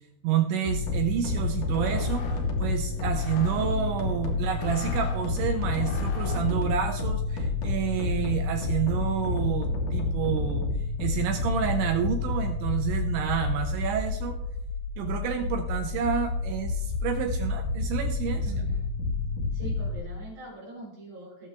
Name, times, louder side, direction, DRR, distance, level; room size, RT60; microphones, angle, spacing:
voice 1, 0.2-10.7 11.0-14.4 15.0-18.5, right 8 dB, 75° right, 4 dB, 2.9 m, -29 dB
sound 1, 0.6-20.0, left 3 dB, 60° left, 2.3 m, -29 dB
sound 2, 1.5-6.8, left 5 dB, 80° left, 2.0 m, -43 dB
voice 2, 18.4-18.9 19.5-21.5, right 1 dB, 45° right, -4 dB, 5.5 m, -43 dB
18.5 x 7.2 x 3.4 m, 0.80 s
omnidirectional pair, 6.0 m